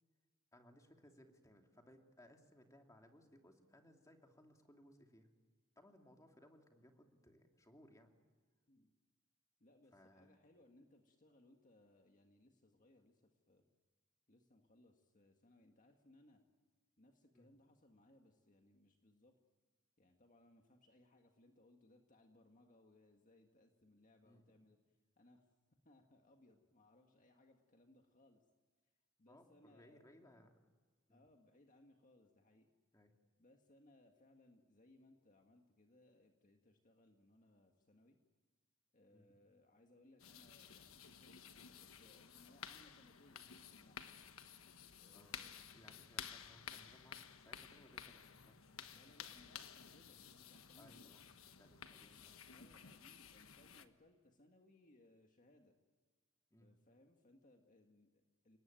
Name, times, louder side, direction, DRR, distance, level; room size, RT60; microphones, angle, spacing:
voice 1, 0.5-5.3 5.8-8.1 9.9-10.3 17.3-17.5 24.2-24.5 29.3-30.6 31.1-31.2 32.9-33.1 39.1-39.3 45.1-45.4 45.7-48.6 50.8-52.4 56.5-56.7, left 1 dB, 15° left, 3 dB, 2.6 m, -65 dB
voice 2, 9.6-13.7 14.3-16.4 17.0-19.4 20.0-24.8 25.2-25.5 25.8-28.4 29.2-30.1 31.1-32.7 33.4-38.2 38.9-44.0 45.0-45.6 48.9-51.2 52.0-52.2 52.5-55.7 56.6-58.6, left 1 dB, 40° left, 3 dB, 1.8 m, -68 dB
sound 1, 40.2-53.9, left 8 dB, 80° left, 1.3 m, -54 dB
30.0 x 19.0 x 9.1 m, 1.4 s
head